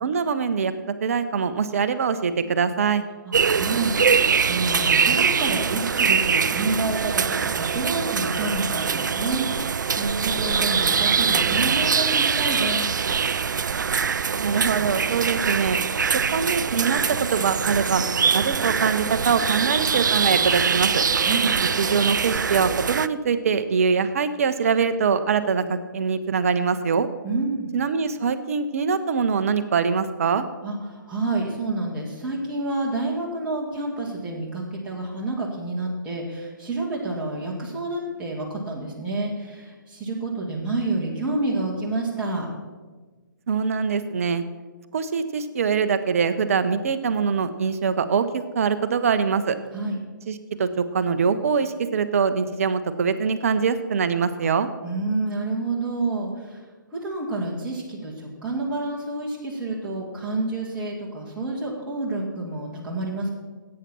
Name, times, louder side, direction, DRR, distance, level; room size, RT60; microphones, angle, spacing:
voice 1, 0.0-3.0 14.4-15.8 16.1-18.0 18.3-21.0 21.8-27.1 27.7-30.5 43.5-44.4 44.9-49.6 50.3-54.7, right 6 dB, 40° right, 11 dB, 0.8 m, -23 dB
voice 2, 3.3-12.9 21.2-21.5 27.2-27.7 30.6-42.5 49.7-50.0 54.8-56.6 56.9-63.3, right 2 dB, 10° right, -6 dB, 2.1 m, -29 dB
sound 1, 3.3-23.1, right 6 dB, 60° right, 0.4 m, -23 dB
16.0 x 8.7 x 4.3 m, 1.3 s
figure-of-eight pair, 140°, 11 cm